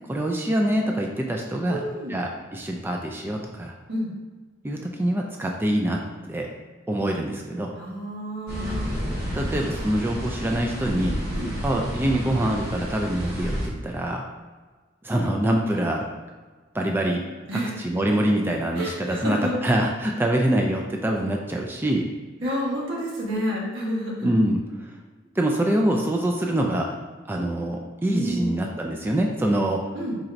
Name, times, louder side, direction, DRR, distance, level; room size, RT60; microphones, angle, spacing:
voice 1, 0.1-1.8 2.1-3.7 4.6-6.0 6.3-6.5 6.9-7.7 9.3-11.2 11.6-14.2 15.0-16.1 16.7-17.2 17.5-22.1 24.2-24.6 25.4-26.9 27.3-29.8, right 1 dB, 10° right, 1 dB, 0.3 m, -25 dB
voice 2, 1.6-2.2 3.9-4.1 7.7-8.9 11.3-11.5 15.8-15.9 17.5-17.7 18.7-19.5 22.4-24.3 28.1-28.7 29.9-30.2, equal, 80° right, -4 dB, 1.3 m, -29 dB
sound 1, 8.5-13.7, equal, 55° right, 0.9 m, -30 dB
4.4 x 3.9 x 2.5 m, 1.3 s
head